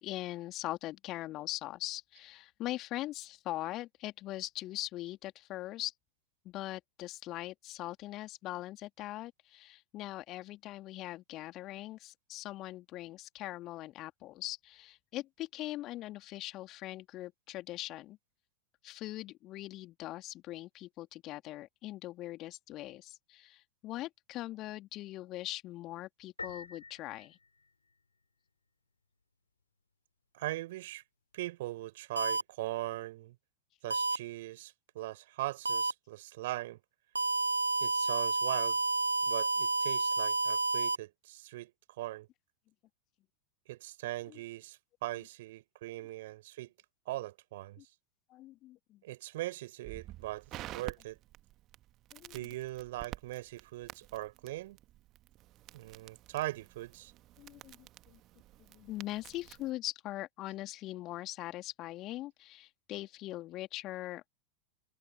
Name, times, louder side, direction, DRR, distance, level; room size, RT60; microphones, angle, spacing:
voice 1, 0.0-5.9 6.4-18.2 18.8-27.4 44.3-44.4 48.3-49.0 52.1-52.3 57.4-58.2 58.7-64.3, left 16 dB, 35° left, 2.6 m, -41 dB
Piano, 26.4-28.2, left 4 dB, 80° left, 5.3 m, -47 dB
voice 2, 30.3-31.0 31.3-33.3 33.8-36.8 37.8-38.8 39.2-42.3 43.7-46.7 47.0-47.8 49.0-50.5 50.7-51.2 52.3-54.8 55.7-57.1, right 17 dB, 55° right, 5.1 m, -40 dB
sound 1, 32.2-32.4 33.9-34.2 35.7-35.9 37.2-41.0, right 3 dB, 80° right, 0.6 m, -30 dB
Crackle, 49.8-59.7, right 15 dB, 35° right, 1.5 m, -50 dB
figure-of-eight pair, 90°, 0 cm